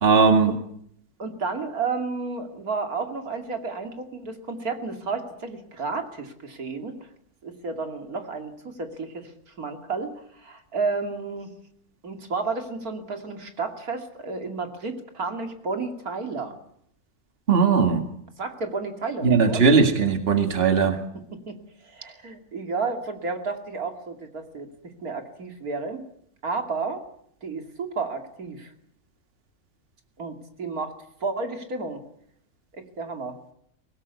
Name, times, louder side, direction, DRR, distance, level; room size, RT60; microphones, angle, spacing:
voice 1, 0.0-0.5 17.5-18.0 19.2-21.0, right 5 dB, 40° right, 7 dB, 2.2 m, -18 dB
voice 2, 1.2-7.0 7.4-9.3 9.6-11.5 12.0-16.6 18.4-19.6 21.3-24.7 25.0-26.0 26.4-27.0 27.4-28.7 30.2-32.0 32.7-33.4, right 4 dB, 75° right, 5 dB, 3.0 m, -32 dB
24.0 x 18.5 x 8.4 m, 0.69 s
omnidirectional pair, 1.6 m